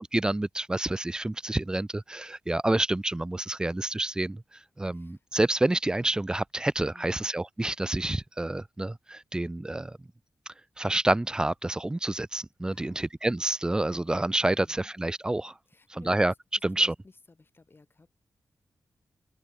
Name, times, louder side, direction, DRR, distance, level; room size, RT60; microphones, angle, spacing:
voice 1, 0.0-4.4 4.8-10.0 10.8-15.5 16.1-16.3 16.6-16.9, right 2 dB, 10° right, 0.3 m, -28 dB
voice 2, 4.9-5.2 6.9-7.3 12.7-13.1 14.5-14.9 15.7-16.2 16.7-18.1, left 3 dB, 30° left, 6.7 m, -55 dB
open air
wide cardioid pair, 110°, 7 cm